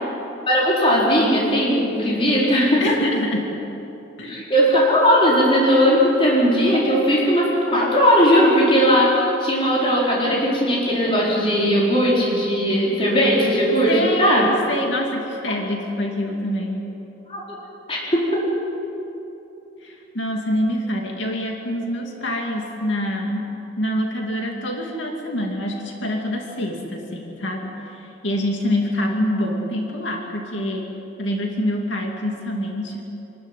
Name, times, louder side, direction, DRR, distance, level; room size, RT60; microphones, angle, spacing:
voice 1, 0.5-3.0 4.2-14.4 17.3-17.6 17.9-18.2, equal, 30° left, -5 dB, 4.6 m, -18 dB
voice 2, 2.8-3.5 4.2-4.5 13.9-16.8 19.8-33.0, left 1 dB, 80° left, 1 dB, 2.5 m, -26 dB
27.0 x 13.0 x 9.3 m, 3.0 s
head